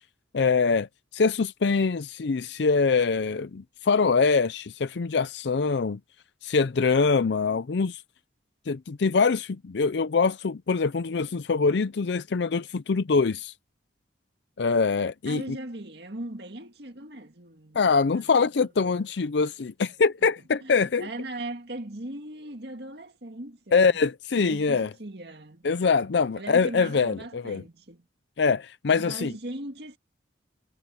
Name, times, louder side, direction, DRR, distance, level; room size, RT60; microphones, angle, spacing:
voice 1, 0.3-0.9 1.1-6.0 6.4-8.0 8.7-13.5 14.6-15.4 17.7-21.1 23.7-24.9 25.6-27.6 28.4-29.3, left 4 dB, 65° left, 0.5 m, -24 dB
voice 2, 15.3-19.0 20.6-24.0 24.4-25.7 26.4-28.1 28.9-30.0, right 1 dB, 60° right, 2.1 m, -39 dB
head